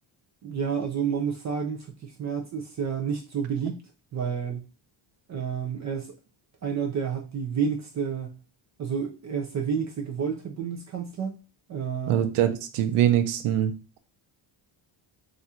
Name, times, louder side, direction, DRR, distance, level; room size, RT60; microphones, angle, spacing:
voice 1, 0.4-3.8 4.1-4.6 5.3-6.1 6.6-8.4 8.8-11.4 11.7-12.3, right 7 dB, 40° right, 2 dB, 0.4 m, -30 dB
voice 2, 12.1-13.7, right 11 dB, 85° right, 9 dB, 0.6 m, -23 dB
2.5 x 2.4 x 4.1 m, 0.32 s
cardioid pair, 160°, 48 cm